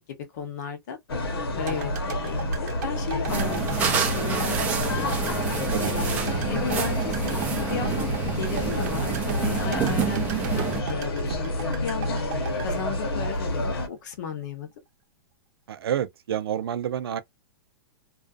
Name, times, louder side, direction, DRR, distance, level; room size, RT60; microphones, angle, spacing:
voice 1, 0.3-1.0 1.5-5.1 5.8-10.3 10.5-12.2 12.6-14.7, left 7 dB, 50° left, 0.7 m, -35 dB
sound 1, 1.1-13.9, left 1 dB, 90° left, 1.0 m, -29 dB
sound 2, 1.7-13.8 14.1-14.2, right 6 dB, 45° right, 0.7 m, -38 dB
sound 3, 3.3-10.8, right 7 dB, 10° right, 0.4 m, -29 dB
voice 2, 15.7-17.2, right 10 dB, 85° right, 0.5 m, -28 dB
2.5 x 2.3 x 2.4 m
hypercardioid pair, 165°, 12 cm